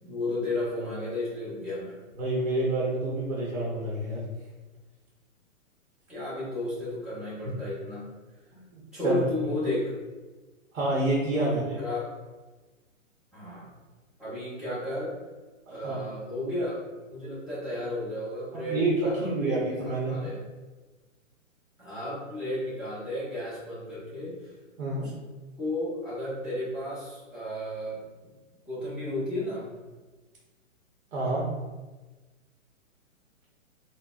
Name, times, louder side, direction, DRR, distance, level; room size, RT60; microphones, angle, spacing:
voice 1, 0.0-2.0 6.1-8.1 8.9-9.9 11.3-12.0 13.3-13.7 14.2-15.2 15.7-16.8 17.1-20.4 21.8-24.5 24.9-25.1 25.6-28.3 28.7-29.7, left 1 dB, ahead, -12 dB, 0.7 m, -33 dB
voice 2, 2.2-4.3 8.5-9.2 10.7-11.8 15.7-16.1 18.5-20.2 24.8-25.1 31.1-31.4, right 2 dB, 70° right, -4 dB, 0.9 m, -28 dB
3.8 x 2.2 x 2.3 m, 1.2 s
hypercardioid pair, 145°, 40 cm